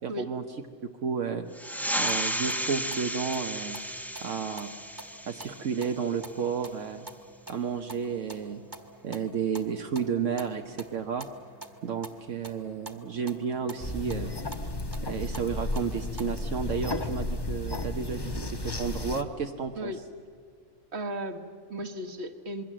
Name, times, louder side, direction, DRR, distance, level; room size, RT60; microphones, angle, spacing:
voice 1, 0.0-0.4 1.0-1.5 2.0-3.8 4.2-4.7 5.3-7.1 7.5-8.6 9.0-11.3 11.8-14.3 15.0-19.9, right 6 dB, 75° right, 4 dB, 1.3 m, -32 dB
sound 1, 1.5-6.6, equal, ahead, 1.1 m, -34 dB
sound 2, 1.9-16.2, right 2 dB, 15° right, 1.6 m, -48 dB
sound 3, 13.8-19.2, left 2 dB, 20° left, 1.1 m, -33 dB
voice 2, 20.9-22.6, equal, 60° right, 8 dB, 1.7 m, -35 dB
26.5 x 22.5 x 7.5 m, 2.2 s
omnidirectional pair, 1.3 m